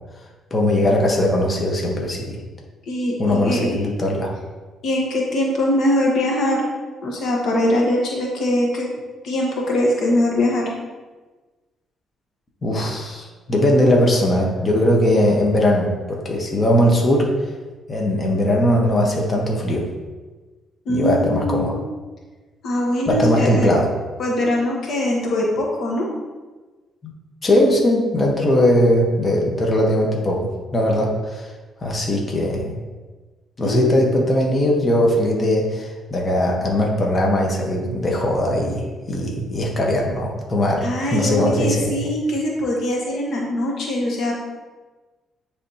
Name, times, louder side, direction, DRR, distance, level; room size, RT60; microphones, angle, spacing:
voice 1, 0.5-2.4 3.2-4.3 12.6-17.3 17.9-19.9 20.9-21.7 23.1-23.9 27.0-27.1 27.4-31.5 31.8-32.7 33.6-42.1, left 1 dB, 35° left, -1 dB, 1.1 m, -19 dB
voice 2, 2.9-3.9 4.8-6.7 7.0-8.9 9.2-10.7 20.9-21.8 22.6-23.7 24.2-26.1 33.6-34.0 40.8-44.3, left 1 dB, 70° left, -2 dB, 1.2 m, -22 dB
9.8 x 3.4 x 2.8 m, 1.3 s
cardioid pair, 90°, 0 cm